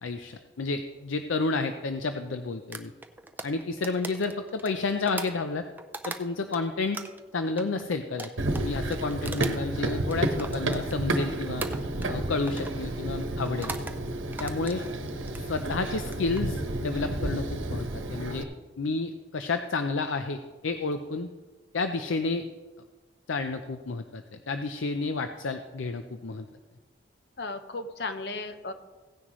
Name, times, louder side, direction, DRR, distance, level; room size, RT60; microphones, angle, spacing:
voice 1, 0.0-2.9 3.4-5.6 6.1-7.0 7.3-11.7 12.1-13.7 14.4-14.8 15.4-18.5 18.8-21.3 21.7-22.5 23.3-26.5, left 3 dB, 85° left, 8 dB, 0.6 m, -31 dB
sound 1, 2.7-6.6 6.9-11.2 11.6-12.2 12.5-12.8 13.5-14.0 14.3-15.5 16.0-16.4, right 3 dB, 10° right, 0.4 m, -40 dB
Run, 8.4-18.4, right 1 dB, 85° right, 1.0 m, -31 dB
voice 2, 27.4-28.7, left 3 dB, 55° left, 8 dB, 0.8 m, -35 dB
16.5 x 9.8 x 3.1 m, 1.3 s
head